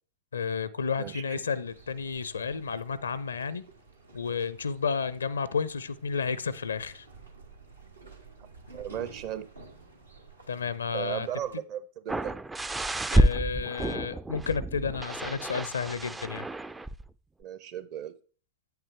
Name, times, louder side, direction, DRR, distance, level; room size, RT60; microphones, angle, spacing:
voice 1, 0.3-3.6 4.1-7.1 10.5-11.3 13.1-16.4, left 5 dB, 75° left, 18 dB, 0.5 m, -31 dB
voice 2, 1.0-1.4 8.7-9.5 10.9-12.3 17.4-18.2, right 10 dB, 40° right, 13 dB, 0.8 m, -36 dB
sound 1, 1.7-11.5, right 3 dB, 80° right, 1.3 m, -52 dB
sound 2, 12.1-17.1 17.4-17.5, right 1 dB, 10° right, 0.3 m, -29 dB
8.7 x 8.1 x 3.3 m, 0.39 s
figure-of-eight pair, 90°, 0 cm